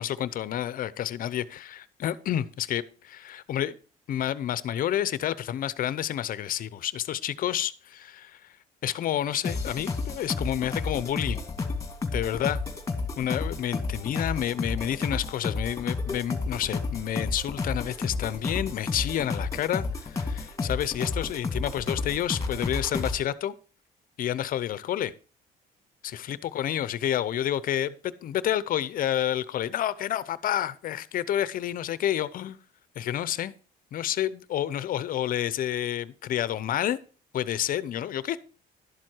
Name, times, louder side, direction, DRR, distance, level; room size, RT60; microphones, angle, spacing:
voice 1, 0.0-3.8 4.1-8.3 8.8-11.4 12.1-12.6 13.2-23.5 24.2-25.1 26.0-32.6 33.0-33.5 33.9-37.0 37.3-38.4, left 11 dB, 55° left, 0.7 m, -29 dB
sound 1, 9.4-23.2, left 4 dB, 20° left, 1.8 m, -31 dB
12.0 x 7.6 x 4.5 m
cardioid pair, 110°, 17 cm